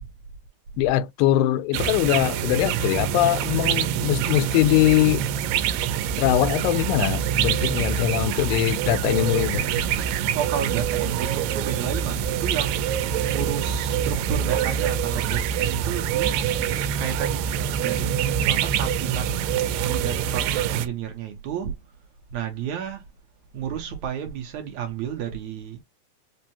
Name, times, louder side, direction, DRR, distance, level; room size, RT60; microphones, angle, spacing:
voice 1, 0.8-5.2 6.2-9.6, left 15 dB, 85° left, 2.2 m, -22 dB
sound 1, 1.7-20.9, right 9 dB, 90° right, 2.4 m, -25 dB
voice 2, 9.2-12.8 13.3-16.4 17.0-17.5 17.7-19.4 19.8-21.7 22.3-23.0 23.5-25.8, right 8 dB, 75° right, 1.8 m, -31 dB
5.4 x 2.0 x 2.7 m
omnidirectional pair, 4.0 m